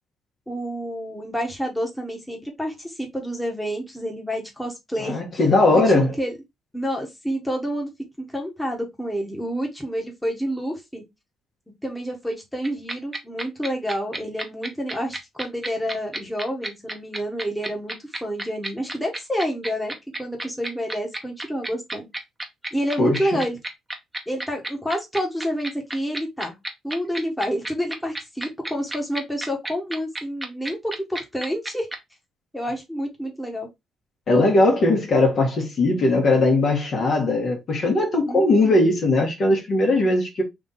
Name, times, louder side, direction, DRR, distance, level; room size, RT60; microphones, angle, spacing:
voice 1, 0.5-5.2 5.7-6.3 6.7-7.9 8.2-11.0 11.8-22.1 22.7-23.6 24.3-26.5 26.8-31.9 32.5-33.7 38.3-38.8, equal, 5° left, 1.3 m, -29 dB
voice 2, 5.0-6.2 23.0-23.3 34.3-40.4, left 2 dB, 55° left, 1.6 m, -19 dB
sound 1, 12.6-32.0, right 2 dB, 15° right, 1.0 m, -30 dB
3.6 x 2.7 x 3.7 m
cardioid pair, 90°, 0 cm